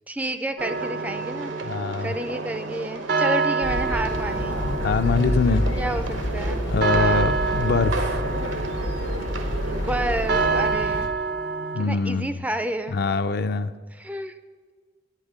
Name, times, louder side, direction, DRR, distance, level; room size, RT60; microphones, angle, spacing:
voice 1, 0.1-1.7 2.0-4.6 5.8-6.0 6.3-6.6 6.9-7.3 9.6-11.1 11.8-13.0 13.9-14.3, right 1 dB, 10° right, 10 dB, 0.3 m, -30 dB
sound 1, 0.6-11.8, right 4 dB, 55° right, 0.5 m, -28 dB
sound 2, 0.6-10.6, right 3 dB, 85° right, 1.0 m, -35 dB
voice 2, 1.6-2.1 4.8-5.7 6.7-8.2 11.7-12.4 12.9-13.7, left 4 dB, 55° left, 11 dB, 0.4 m, -24 dB
sound 3, 3.6-11.1, left 1 dB, 85° left, 1.1 m, -28 dB
10.0 x 9.1 x 5.0 m, 1.5 s
head